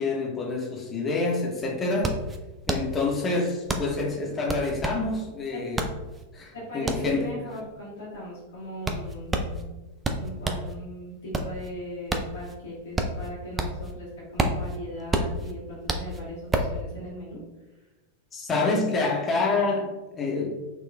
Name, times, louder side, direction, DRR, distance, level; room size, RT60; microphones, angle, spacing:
voice 1, 0.0-2.2 2.7-5.8 6.3-7.3 18.3-20.6, left 3 dB, 20° left, 0 dB, 0.7 m, -27 dB
sound 1, 1.1-1.2 1.4-10.7 11.1-13.9 14.2-16.8, right 2 dB, 15° right, 0.3 m, -29 dB
voice 2, 6.5-9.7 10.2-17.4, equal, 65° left, -7 dB, 0.8 m, -39 dB
3.9 x 2.3 x 2.2 m, 1.1 s
figure-of-eight pair, 90°, 0 cm